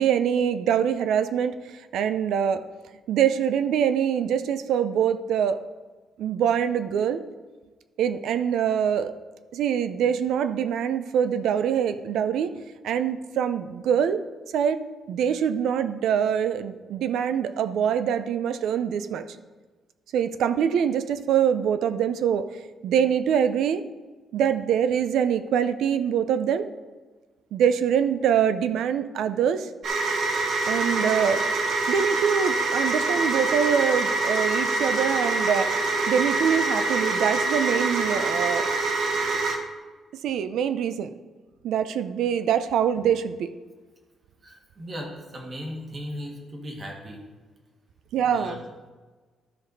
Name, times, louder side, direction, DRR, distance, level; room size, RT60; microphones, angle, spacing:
voice 1, 0.0-1.6 1.9-2.6 3.1-5.6 6.2-7.2 8.0-9.1 9.5-12.5 12.8-14.2 14.5-19.3 20.1-22.5 22.8-23.8 24.3-26.7 27.5-29.7 30.7-31.5 31.9-38.7 40.2-41.1 41.6-43.5 48.1-48.5, right 8 dB, 85° right, 12 dB, 0.5 m, -24 dB
sound 1, 29.8-39.6, right 2 dB, 60° right, 1.0 m, -25 dB
voice 2, 44.4-47.3 48.1-48.6, equal, 25° right, 1 dB, 1.5 m, -37 dB
12.5 x 5.3 x 4.0 m, 1.4 s
cardioid pair, 165°, 0 cm